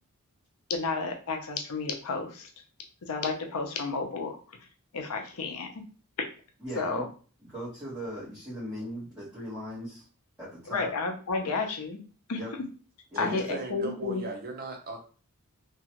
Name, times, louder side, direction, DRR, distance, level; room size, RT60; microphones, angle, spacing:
voice 1, 0.7-2.5 3.0-4.4 4.9-5.8 6.8-7.1 10.7-12.0 12.3-12.4 13.2-14.2, left 4 dB, 90° left, 3 dB, 0.6 m, -31 dB
voice 2, 6.6-7.0 7.4-10.0 10.4-10.9 12.4-12.5 13.1-13.3, equal, 5° right, -12 dB, 1.2 m, -38 dB
voice 3, 13.1-15.0, right 2 dB, 45° right, 2 dB, 0.7 m, -37 dB
2.9 x 2.3 x 2.9 m, 0.38 s
head